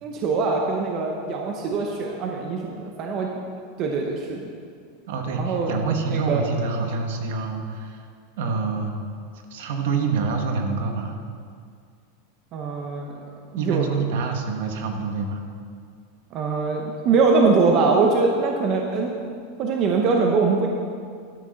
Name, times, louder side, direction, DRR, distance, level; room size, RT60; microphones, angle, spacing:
voice 1, 0.0-3.3 3.8-4.5 5.4-5.7 6.1-6.4 12.5-13.1 13.6-13.9 16.3-19.2 19.6-20.7, right 4 dB, 30° right, 1 dB, 0.8 m, -22 dB
voice 2, 5.1-8.0 8.4-9.0 9.5-11.2 13.6-15.4, right 4 dB, 60° right, 4 dB, 1.3 m, -26 dB
12.0 x 6.4 x 6.4 m, 2.2 s
supercardioid pair, 175°, 0 cm